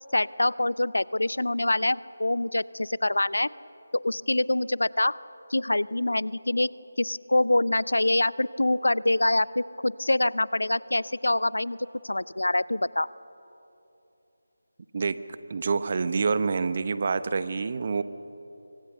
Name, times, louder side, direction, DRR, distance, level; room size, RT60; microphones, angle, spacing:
voice 1, 0.1-3.5 4.0-5.2 5.5-6.7 7.0-11.8 12.0-13.1, left 1 dB, 75° left, 20 dB, 0.6 m, -25 dB
voice 2, 15.5-18.0, right 4 dB, 40° right, 13 dB, 1.0 m, -27 dB
27.5 x 24.5 x 6.8 m, 3.0 s
figure-of-eight pair, 160°, 0 cm